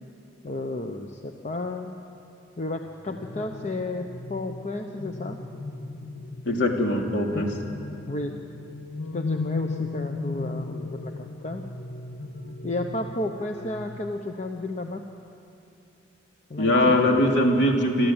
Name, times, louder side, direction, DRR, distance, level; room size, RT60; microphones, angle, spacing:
voice 1, 0.4-2.0 2.6-5.4 7.3-7.5 8.1-8.4 9.1-11.1 11.4-11.6 12.6-15.0 16.5-17.0, left 2 dB, 35° left, 4 dB, 0.8 m, -32 dB
sound 1, 2.8-14.0, left 3 dB, 85° left, 1.6 m, -37 dB
voice 2, 6.5-7.5 16.6-18.1, left 1 dB, 65° left, 1 dB, 2.9 m, -21 dB
26.5 x 13.5 x 8.8 m, 2.9 s
head